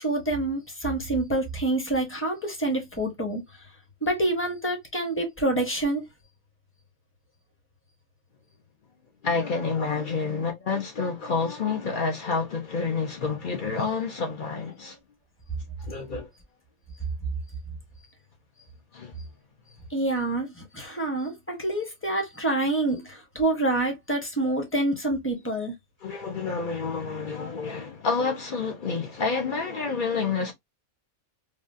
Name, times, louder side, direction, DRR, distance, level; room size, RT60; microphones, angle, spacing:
voice 1, 0.0-3.4 4.0-6.0 19.9-25.7, right 2 dB, 10° left, 0.7 m, -27 dB
voice 2, 9.2-15.0 15.9-16.3 18.9-19.1 26.0-30.5, left 4 dB, 50° left, 0.6 m, -28 dB
3.5 x 2.3 x 2.5 m
omnidirectional pair, 1.5 m